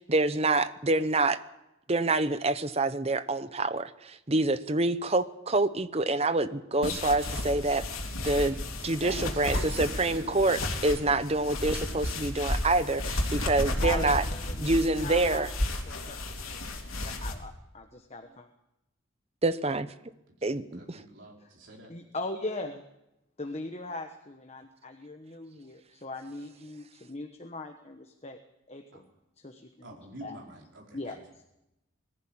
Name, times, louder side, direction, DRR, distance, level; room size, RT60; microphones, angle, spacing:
voice 1, 0.0-1.4 1.9-7.9 8.2-14.2 14.6-15.5 19.4-19.9 20.4-21.0, right 2 dB, 30° right, 12 dB, 0.8 m, -27 dB
sound 1, 6.8-17.3, left 1 dB, 85° left, 3.3 m, -33 dB
voice 2, 9.0-10.4 20.5-21.9 28.9-29.0 29.8-31.2, right 1 dB, 60° right, -1 dB, 4.7 m, -45 dB
voice 3, 13.8-15.5 15.9-18.5 21.4-21.5 21.9-22.8 23.4-28.4 28.7-29.0 29.4-30.4 30.9-31.4, left 2 dB, 30° left, 6 dB, 1.2 m, -40 dB
21.0 x 14.5 x 8.8 m, 0.90 s
head